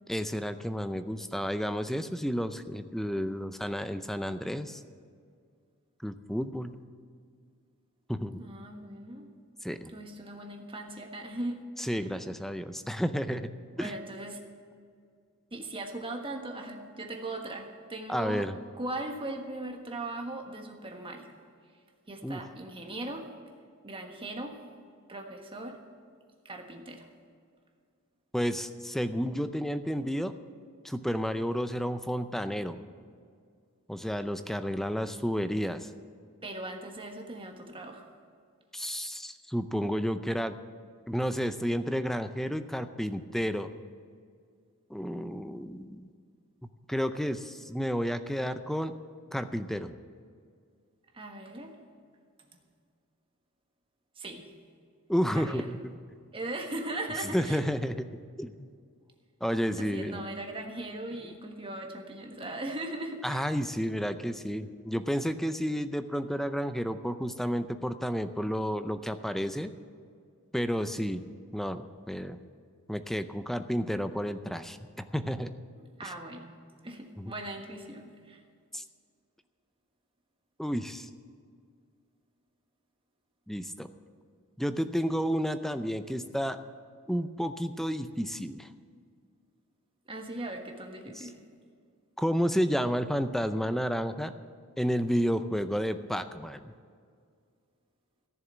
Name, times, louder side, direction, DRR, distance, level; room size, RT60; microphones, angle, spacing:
voice 1, 0.1-4.8 6.0-6.8 8.1-8.4 9.6-9.9 11.8-13.5 13.8-14.0 18.1-18.6 22.2-22.4 28.3-30.3 30.8-32.8 33.9-35.9 38.7-40.6 41.1-43.7 44.9-46.1 46.9-48.9 49.3-49.9 55.1-56.0 57.3-58.7 59.4-60.2 63.2-69.7 70.5-71.3 71.5-72.4 72.9-75.5 76.0-76.1 77.2-77.3 78.7-78.8 80.6-81.1 83.5-83.9 84.6-86.6 87.1-88.7 91.2-91.3 92.2-94.3 94.8-96.7, equal, ahead, 10 dB, 0.5 m, -31 dB
voice 2, 8.4-9.3 9.9-11.6 11.9-12.1 13.8-14.4 15.5-18.5 18.8-21.3 22.1-23.3 23.8-24.6 25.1-25.8 26.4-27.1 36.4-38.0 51.1-51.7 54.2-54.5 55.3-55.8 56.3-57.6 59.8-63.5 76.0-78.4 90.1-91.4, right 2 dB, 25° right, 3 dB, 1.4 m, -39 dB
14.5 x 6.9 x 8.7 m, 2.1 s
head